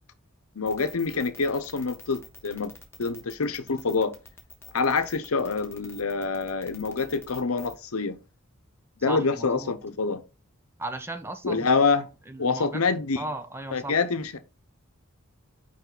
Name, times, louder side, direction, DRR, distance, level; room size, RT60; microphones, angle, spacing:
voice 1, 0.5-2.7 3.0-4.1 4.7-8.2 9.0-10.2 11.4-12.1 12.4-13.2 13.7-14.4, left 4 dB, 75° left, 0.8 m, -26 dB
sound 1, 0.7-7.8, left 4 dB, 10° left, 1.2 m, -47 dB
voice 2, 9.0-9.7 10.8-11.8 12.3-12.8 13.2-14.0, right 2 dB, 10° right, 0.6 m, -36 dB
5.8 x 5.1 x 3.8 m
head